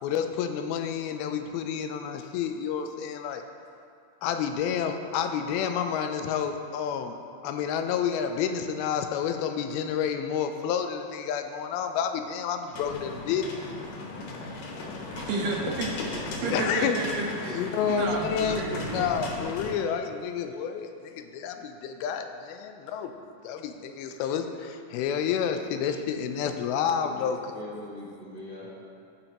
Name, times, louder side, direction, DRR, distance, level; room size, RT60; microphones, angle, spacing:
voice 1, 0.0-3.4 4.2-7.2 7.4-13.6 16.5-17.0 17.5-23.1 23.4-27.5, left 7 dB, 85° left, 7 dB, 2.4 m, -29 dB
sound 1, 12.7-19.7, left 2 dB, 70° left, 2.5 m, -36 dB
voice 2, 15.1-19.1, right 2 dB, 75° right, -1 dB, 2.2 m, -32 dB
voice 3, 16.1-16.6 17.5-17.9 27.0-28.8, left 1 dB, 25° left, -10 dB, 1.6 m, -42 dB
16.0 x 5.3 x 2.9 m, 2.4 s
omnidirectional pair, 4.3 m